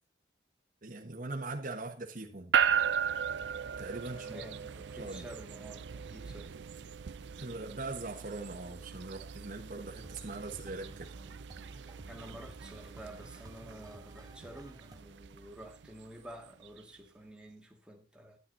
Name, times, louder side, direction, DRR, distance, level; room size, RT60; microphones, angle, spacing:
voice 1, 0.8-2.6 3.8-4.4 4.9-5.3 7.4-11.1, right 2 dB, 50° right, 1.4 m, -41 dB
sound 1, 2.5-16.8, right 7 dB, 80° right, 0.5 m, -37 dB
voice 2, 4.2-6.6 12.1-18.4, right 1 dB, 5° right, 2.0 m, -50 dB
sound 2, 10.0-15.0, right 1 dB, 20° right, 1.0 m, -55 dB
11.0 x 9.1 x 4.0 m
head